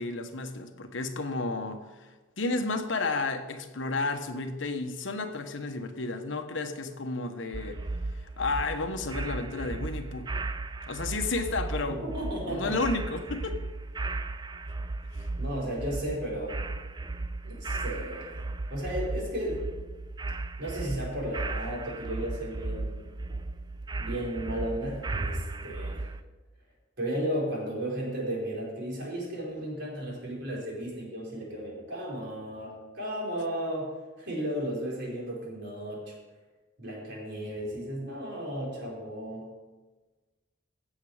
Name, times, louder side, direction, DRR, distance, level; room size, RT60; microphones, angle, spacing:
voice 1, 0.0-2.1 2.4-7.8 8.1-10.3 10.8-12.0 12.4-13.6 15.2-15.3, left 3 dB, 65° left, 7 dB, 1.1 m, -32 dB
sound 1, 7.5-26.2, right 2 dB, 20° right, 0.4 m, -36 dB
voice 2, 12.0-12.8 15.4-16.7 17.4-18.4 18.7-19.6 20.6-23.1 24.0-26.1 27.0-36.1 36.8-39.5, equal, 60° right, -4 dB, 4.6 m, -34 dB
16.5 x 7.5 x 4.9 m, 1.3 s
head